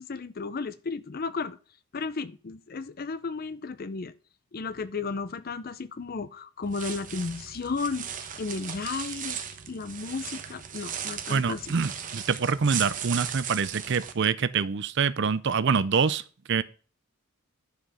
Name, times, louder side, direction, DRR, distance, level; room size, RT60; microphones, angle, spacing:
voice 1, 0.0-1.6 1.9-4.1 4.5-9.4 9.7-11.7, left 4 dB, 40° left, 0.5 m, -34 dB
sound 1, 6.6-14.1, right 8 dB, 35° right, 0.9 m, -37 dB
voice 2, 11.3-16.2 16.5-16.6, right 5 dB, 55° right, 0.5 m, -25 dB
10.5 x 5.1 x 5.6 m
head